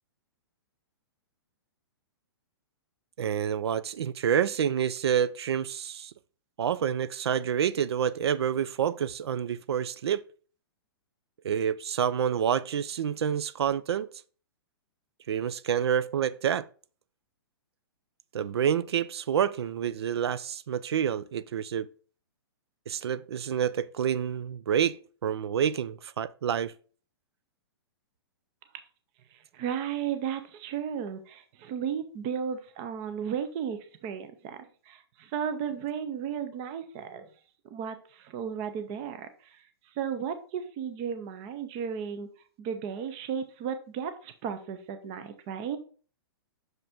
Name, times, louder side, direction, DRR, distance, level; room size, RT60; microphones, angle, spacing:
voice 1, 3.2-6.1 6.6-10.2 11.4-14.1 15.3-16.7 18.3-21.9 22.9-26.7, right 8 dB, 80° right, 0.5 m, -28 dB
voice 2, 29.3-37.3 37.7-42.3 42.6-45.8, right 8 dB, 15° right, 0.4 m, -34 dB
6.2 x 5.2 x 3.4 m
hypercardioid pair, 180°, 13 cm